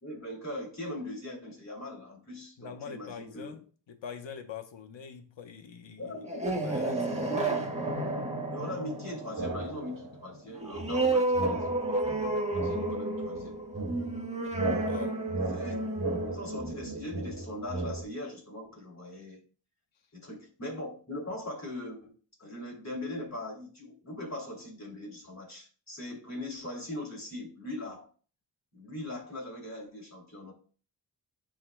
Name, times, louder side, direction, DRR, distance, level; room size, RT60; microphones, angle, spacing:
voice 1, 0.0-3.5 6.0-6.5 7.2-7.6 7.8-12.0 12.5-13.6 15.5-15.8 16.1-19.4 20.1-28.1 28.7-30.5, left 1 dB, 35° left, 2.8 m, -40 dB
voice 2, 2.6-6.1 6.5-7.3 14.8-15.2, left 7 dB, 80° left, 1.0 m, -43 dB
sound 1, 6.1-17.4, right 2 dB, 15° right, 1.4 m, -32 dB
sound 2, 9.4-10.2 10.7-18.0, right 2 dB, 50° right, 1.7 m, -36 dB
11.5 x 3.8 x 2.2 m
cardioid pair, 65°, 44 cm